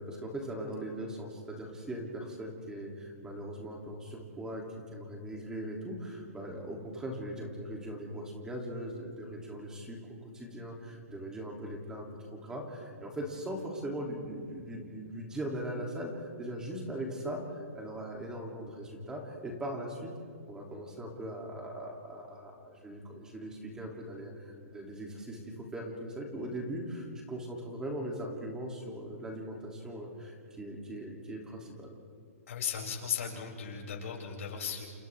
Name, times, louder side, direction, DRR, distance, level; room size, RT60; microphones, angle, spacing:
voice 1, 0.0-4.6 4.9-20.1 20.5-31.9, right 1 dB, 10° right, 0 dB, 3.2 m, -40 dB
voice 2, 32.5-34.9, left 7 dB, 60° left, -2 dB, 7.2 m, -36 dB
29.0 x 29.0 x 3.7 m, 2.3 s
hypercardioid pair, 150°, 8 cm